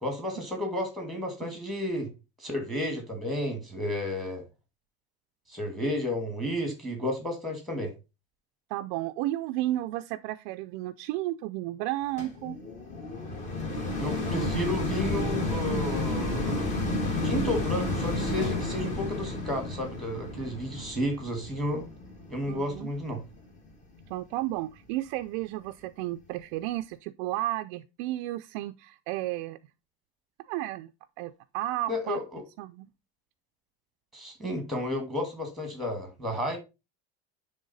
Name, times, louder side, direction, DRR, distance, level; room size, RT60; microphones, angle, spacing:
voice 1, 0.0-2.1 2.4-4.4 5.5-7.9 14.0-16.7 17.2-21.9 22.3-23.2 31.9-32.4 34.1-36.6, left 1 dB, ahead, 1.6 m, -32 dB
voice 2, 8.7-12.6 22.5-22.9 24.1-29.6 30.4-30.9 31.2-32.2 32.6-32.9, right 15 dB, 55° right, 0.4 m, -33 dB
sound 1, 12.2-23.4 24.0-24.1, left 2 dB, 25° left, 1.4 m, -31 dB
10.0 x 3.6 x 4.0 m
cardioid pair, 180°, 30 cm